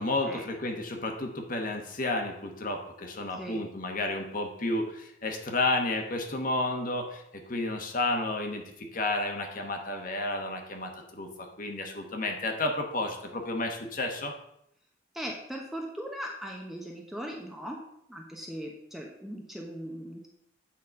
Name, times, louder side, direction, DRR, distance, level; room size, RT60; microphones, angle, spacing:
voice 1, 0.0-14.3, left 2 dB, 45° left, 3 dB, 1.2 m, -31 dB
voice 2, 15.1-17.8 18.1-20.3, equal, ahead, 0 dB, 0.8 m, -39 dB
8.6 x 4.2 x 5.2 m, 0.76 s
head